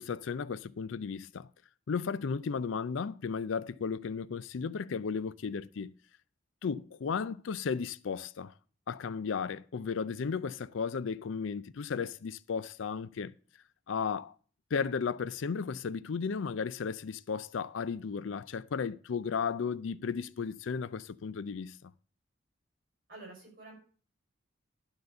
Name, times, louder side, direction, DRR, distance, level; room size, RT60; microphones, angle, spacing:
voice 1, 0.0-1.5 1.9-6.0 6.6-8.5 8.9-13.3 13.9-14.3 14.7-21.9, left 5 dB, 70° left, 0.4 m, -34 dB
voice 2, 23.1-23.7, right 2 dB, 45° right, 5.5 m, -48 dB
12.0 x 4.0 x 7.7 m
head